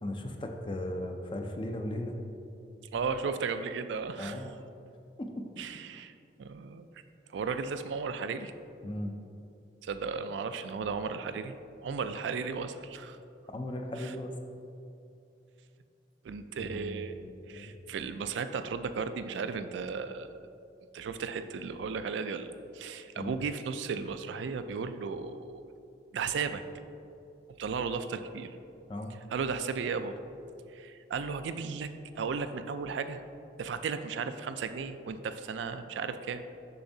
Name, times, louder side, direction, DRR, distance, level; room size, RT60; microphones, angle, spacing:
voice 1, 0.0-2.2 4.2-4.5 5.2-5.5 8.8-9.1 13.5-14.4 16.6-17.7 23.2-23.3 28.9-29.1, left 1 dB, 25° left, 4 dB, 0.4 m, -37 dB
voice 2, 2.9-4.5 5.6-6.1 6.4-6.8 7.3-8.5 9.8-11.5 11.8-13.2 14.0-14.2 16.2-17.2 17.5-20.5 20.9-25.6 26.1-26.6 27.6-28.6 29.3-30.2 30.7-33.2 33.6-36.4, right 5 dB, 80° right, 10 dB, 0.3 m, -35 dB
6.8 x 5.7 x 2.7 m, 2.6 s
head